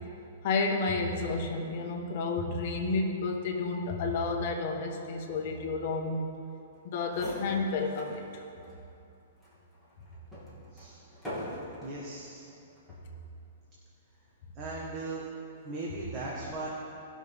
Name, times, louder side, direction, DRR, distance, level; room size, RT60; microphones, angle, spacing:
voice 1, 0.4-6.3 6.8-8.2, left 3 dB, 50° left, 2 dB, 1.4 m, -31 dB
sound 1, 6.8-6.9 7.0-8.2 8.6-8.8 9.4-12.0 12.8-13.1, equal, ahead, 2.7 m, -42 dB
voice 2, 11.8-12.5 14.5-15.2 15.6-16.7, right 2 dB, 25° right, -5 dB, 1.6 m, -38 dB
19.0 x 6.4 x 3.7 m, 2.7 s
hypercardioid pair, 155°, 0 cm